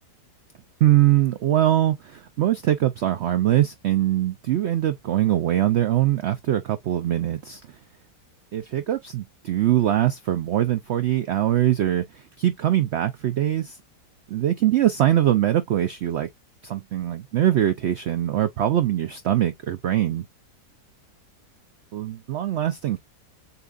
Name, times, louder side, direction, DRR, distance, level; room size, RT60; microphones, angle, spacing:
voice 1, 0.8-7.6 8.5-12.0 12.4-13.8 14.3-16.3 16.6-20.2 21.9-23.0, right 12 dB, 80° right, 0.6 m, -22 dB
6.9 x 2.5 x 2.3 m
omnidirectional pair, 1.7 m